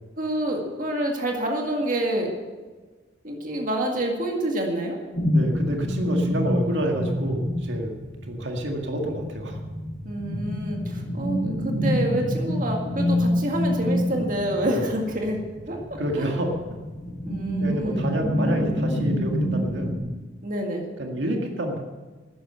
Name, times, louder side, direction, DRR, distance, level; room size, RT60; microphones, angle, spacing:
voice 1, 0.2-2.3 3.2-5.0 10.0-15.4 15.7-16.3 17.3-18.2 20.4-20.9, right 1 dB, 45° right, 1 dB, 2.0 m, -28 dB
sound 1, 5.1-20.0, equal, 70° left, 3.8 m, -27 dB
voice 2, 5.3-7.9 8.3-9.6 14.6-14.8 16.0-16.5 17.6-20.0 21.0-21.8, right 1 dB, 75° right, 2 dB, 1.9 m, -28 dB
13.0 x 10.0 x 7.7 m, 1.3 s
head